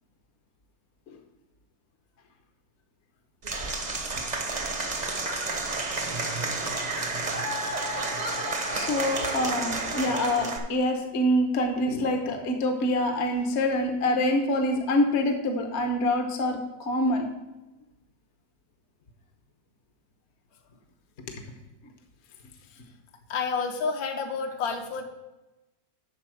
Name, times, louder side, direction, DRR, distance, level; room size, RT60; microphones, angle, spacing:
Applause / Crowd, 3.4-10.6, right 2 dB, 30° right, 0.8 m, -30 dB
voice 1, 8.7-17.3, left 1 dB, 45° left, 4 dB, 1.1 m, -26 dB
voice 2, 23.3-25.0, left 5 dB, 60° left, 5 dB, 1.4 m, -29 dB
11.5 x 4.1 x 6.3 m, 1.0 s
omnidirectional pair, 1.9 m